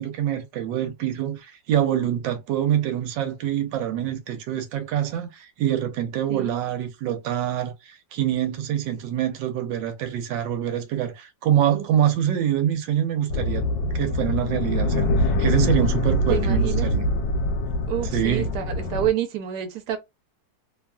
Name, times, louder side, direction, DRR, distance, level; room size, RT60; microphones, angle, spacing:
voice 1, 0.0-13.7 13.9-17.1 18.0-18.5, right 10 dB, 85° right, 1.3 m, -25 dB
sound 1, 13.3-19.1, left 1 dB, 85° left, 1.3 m, -24 dB
voice 2, 16.3-16.9 17.9-20.0, right 11 dB, 70° right, 1.1 m, -28 dB
3.0 x 2.3 x 2.2 m
omnidirectional pair, 2.0 m